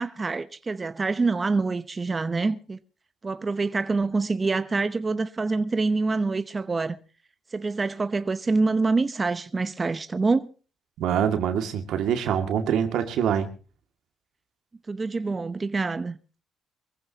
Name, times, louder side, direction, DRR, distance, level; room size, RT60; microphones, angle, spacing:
voice 1, 0.0-2.8 3.2-7.0 7.5-10.5 14.9-16.2, right 3 dB, 30° right, 0.8 m, -26 dB
voice 2, 11.0-13.5, right 8 dB, 80° right, 2.1 m, -25 dB
23.5 x 15.5 x 2.9 m
cardioid pair, 90°, 0 cm